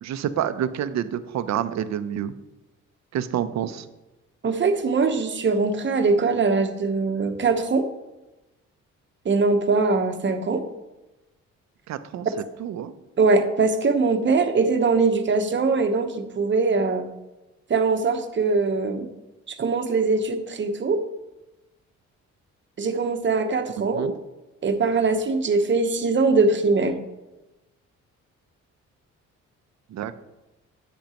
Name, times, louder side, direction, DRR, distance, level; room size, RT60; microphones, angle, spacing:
voice 1, 0.0-2.3 3.1-3.9 11.9-12.3 12.6-12.9 23.8-24.2 29.9-30.2, right 10 dB, 65° right, 12 dB, 0.7 m, -28 dB
voice 2, 4.4-7.9 9.2-10.6 13.2-17.0 17.7-19.1 19.5-21.0 22.8-24.1 24.6-27.0, right 4 dB, 40° right, 7 dB, 1.0 m, -22 dB
10.5 x 8.0 x 3.0 m, 1.0 s
cardioid pair, 90°, 30 cm